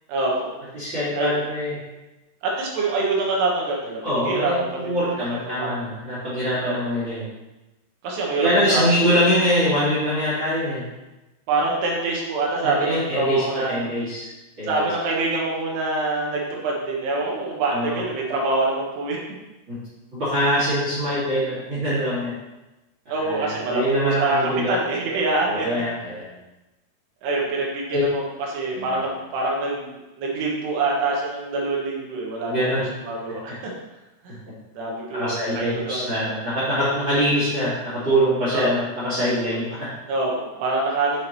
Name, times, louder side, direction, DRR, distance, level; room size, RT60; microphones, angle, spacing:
voice 1, 0.1-0.5 1.1-1.4 2.4-5.1 5.6-5.7 6.6-6.7 8.0-9.1 11.5-13.9 14.6-19.2 23.1-24.4 24.7-25.7 27.2-28.2 28.5-32.5 33.0-33.5 34.2-34.4 34.8-36.1 38.5-38.7 40.1-41.2, right 2 dB, 75° right, -3 dB, 3.2 m, -25 dB
voice 2, 0.7-1.8 4.0-7.2 8.4-10.8 12.6-14.3 14.6-14.9 17.7-18.0 19.7-19.8 20.1-22.3 23.0-24.8 25.4-26.2 27.9-28.0 28.7-29.0 32.5-32.8 33.5-33.6 35.1-39.9, equal, 45° right, -11 dB, 1.7 m, -23 dB
8.2 x 4.7 x 3.0 m, 1.1 s
omnidirectional pair, 4.9 m